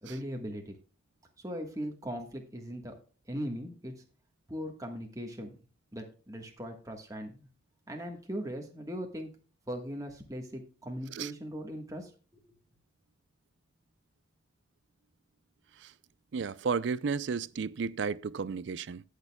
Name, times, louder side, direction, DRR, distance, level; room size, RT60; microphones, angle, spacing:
voice 1, 0.0-0.8 1.4-2.9 3.3-3.9 4.5-5.5 5.9-7.5 7.9-9.3 9.7-12.4, equal, 15° right, 1.4 m, -39 dB
voice 2, 16.3-19.0, right 5 dB, 65° right, 0.4 m, -33 dB
18.0 x 6.6 x 2.3 m
head